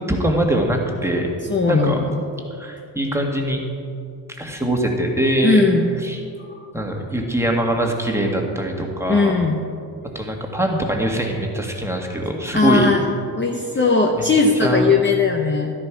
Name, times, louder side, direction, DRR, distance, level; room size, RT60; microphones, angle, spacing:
voice 1, 0.1-1.3 1.7-2.0 2.6-3.6 4.4-5.6 6.0-6.2 6.7-9.4 10.1-12.9 14.6-14.8, right 1 dB, 5° right, 1 dB, 1.8 m, -22 dB
voice 2, 1.5-2.0 5.4-5.9 9.1-9.6 12.5-13.0 13.4-15.7, left 4 dB, 25° left, 1 dB, 0.9 m, -18 dB
12.0 x 11.0 x 4.7 m, 2.4 s
cardioid pair, 90°, 46 cm